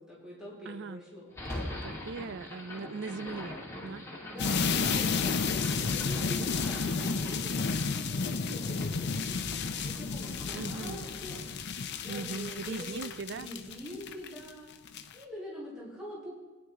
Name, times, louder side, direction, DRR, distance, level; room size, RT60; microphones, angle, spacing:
voice 1, 0.0-1.3 4.3-11.7 12.0-14.7 15.1-16.3, equal, 5° right, -7 dB, 4.1 m, -45 dB
voice 2, 0.7-1.0 1.8-4.1 10.5-11.0 12.1-13.5, right 4 dB, 55° right, 15 dB, 0.4 m, -39 dB
sound 1, 1.3-13.5, left 1 dB, 15° left, 2.5 m, -43 dB
sound 2, 4.4-14.5 14.9-15.1, left 5 dB, 55° left, 0.7 m, -32 dB
22.0 x 10.0 x 3.7 m, 1.2 s
head